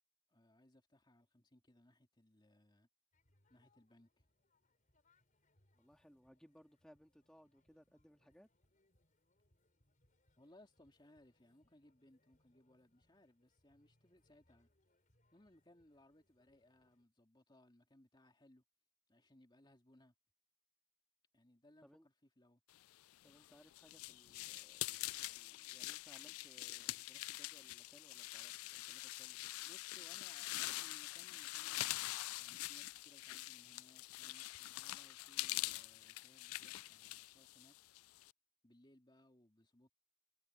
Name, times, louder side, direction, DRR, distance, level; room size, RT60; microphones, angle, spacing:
voice 1, 0.3-2.9 3.5-4.3 10.4-14.7 15.3-18.6 19.1-20.1 21.3-22.6 26.8-27.0 29.6-37.7 38.6-39.9, left 1 dB, 20° left, 2.4 m, -67 dB
sound 1, 3.1-17.0, left 1 dB, 35° left, 4.2 m, -79 dB
voice 2, 5.7-8.5 21.8-22.1 23.2-24.9 25.2-29.5, equal, 5° left, 2.1 m, -65 dB
sound 2, 23.1-38.3, left 18 dB, 80° left, 0.3 m, -45 dB
head